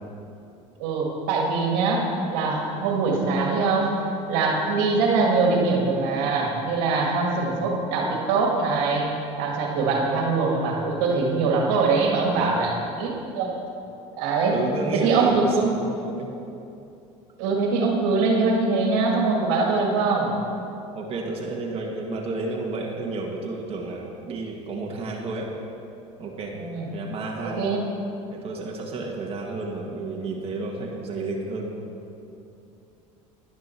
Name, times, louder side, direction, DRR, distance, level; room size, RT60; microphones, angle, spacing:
voice 1, 0.8-3.9 4.3-9.1 9.4-13.6 14.2-14.5 14.9-15.7 17.4-20.3 26.5-26.9 27.4-27.9, right 4 dB, 75° right, 0 dB, 1.9 m, -23 dB
voice 2, 12.3-12.6 14.5-16.3 20.9-25.5 26.2-26.5 26.9-27.7 28.3-31.8, right 3 dB, 35° right, -1 dB, 1.8 m, -31 dB
11.0 x 10.5 x 4.5 m, 2.8 s
supercardioid pair, 90°, 16 cm